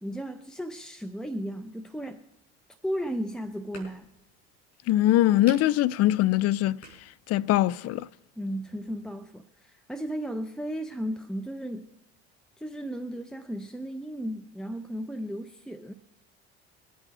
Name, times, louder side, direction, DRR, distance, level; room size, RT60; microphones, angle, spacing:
voice 1, 0.0-2.2 2.8-4.1 8.4-11.9 12.6-15.9, equal, ahead, 0.9 m, -35 dB
sound 1, 2.8-8.1, equal, 85° left, 5.2 m, -53 dB
voice 2, 4.9-6.8 7.3-8.1, left 14 dB, 50° left, 0.5 m, -22 dB
22.5 x 8.3 x 4.3 m
hypercardioid pair, 65°, 33 cm